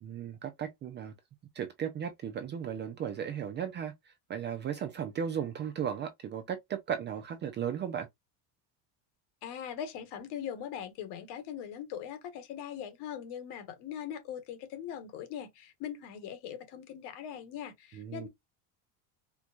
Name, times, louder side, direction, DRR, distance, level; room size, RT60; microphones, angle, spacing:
voice 1, 0.0-1.1 1.5-8.1 17.9-18.3, right 8 dB, 25° right, 0.4 m, -36 dB
voice 2, 9.4-18.3, left 9 dB, 60° left, 1.3 m, -41 dB
4.5 x 2.2 x 2.4 m
cardioid pair, 130°, 45 cm